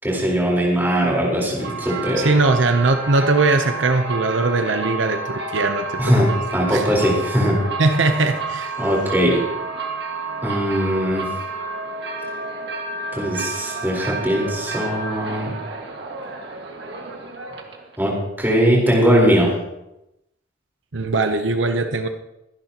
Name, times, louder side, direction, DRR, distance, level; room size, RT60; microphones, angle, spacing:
voice 1, 0.0-2.3 6.0-7.6 8.8-9.4 10.4-11.3 13.1-15.5 18.0-19.5, equal, 10° right, -3 dB, 4.3 m, -20 dB
sound 1, 1.5-18.0, right 3 dB, 60° right, 2.0 m, -30 dB
voice 2, 2.2-6.1 6.7-6.8 7.8-8.7 20.9-22.1, right 3 dB, 80° right, 7 dB, 0.9 m, -20 dB
23.5 x 10.5 x 3.0 m, 0.90 s
head